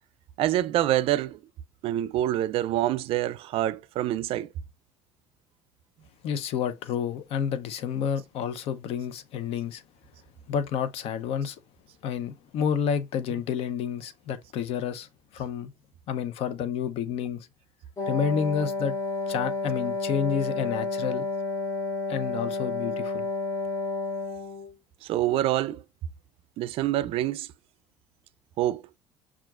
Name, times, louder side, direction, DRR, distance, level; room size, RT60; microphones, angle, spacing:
voice 1, 0.4-1.4 1.8-4.5 13.3-13.4 25.0-25.8 26.6-27.5 28.6-28.8, right 13 dB, 60° right, 0.4 m, -26 dB
voice 2, 6.2-9.8 10.5-11.6 12.0-15.7 16.1-17.5 18.1-18.9 19.3-21.2 22.1-23.3, left 7 dB, 65° left, 0.6 m, -29 dB
Wind instrument woodwind instrument, 18.0-24.7, left 3 dB, 25° left, 0.7 m, -31 dB
5.7 x 2.4 x 2.4 m
cardioid pair, 115°, 11 cm